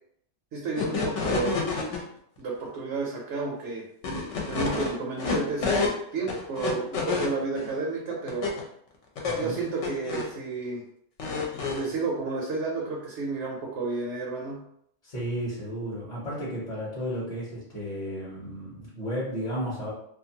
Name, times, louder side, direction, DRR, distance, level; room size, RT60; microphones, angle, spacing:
voice 1, 0.5-1.6 2.4-3.9 4.5-8.5 9.3-10.8 11.7-14.6, right 3 dB, 65° right, -2 dB, 0.8 m, -31 dB
sound 1, 0.8-2.0 4.0-6.0 6.3-7.7 8.3-8.6 9.2-10.3 11.2-11.9, left 4 dB, 65° left, 0.9 m, -29 dB
voice 2, 9.2-9.6 15.0-19.9, equal, 35° left, -8 dB, 0.8 m, -33 dB
2.5 x 2.5 x 2.7 m, 0.71 s
omnidirectional pair, 1.4 m